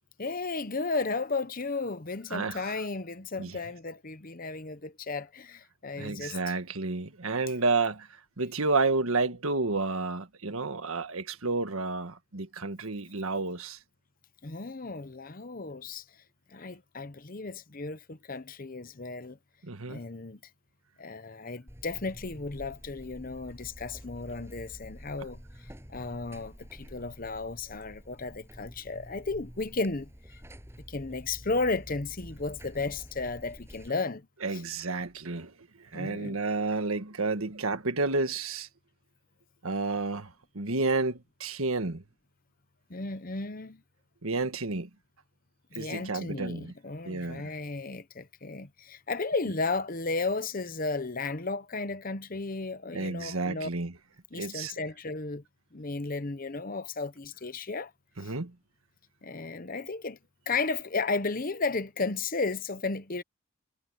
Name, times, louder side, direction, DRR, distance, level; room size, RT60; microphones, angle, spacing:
voice 1, 0.2-6.5 14.4-16.0 16.5-19.4 19.9-20.4 21.0-25.4 25.9-30.1 30.9-34.3 34.5-34.6 35.9-36.4 42.9-43.8 45.7-53.7 54.3-55.4 55.7-57.9 58.2-58.3 59.2-60.2 60.5-63.2, left 3 dB, 40° left, 1.0 m, -34 dB
voice 2, 6.0-8.1 8.4-13.8 19.6-20.0 34.4-35.5 35.9-38.7 39.6-40.3 40.5-42.0 44.2-44.9 45.7-46.7 47.0-47.4 52.9-53.9 54.3-54.7 58.2-58.5, right 3 dB, 80° right, 1.6 m, -30 dB
Buzz, 21.7-33.9, equal, 10° right, 7.6 m, -48 dB
head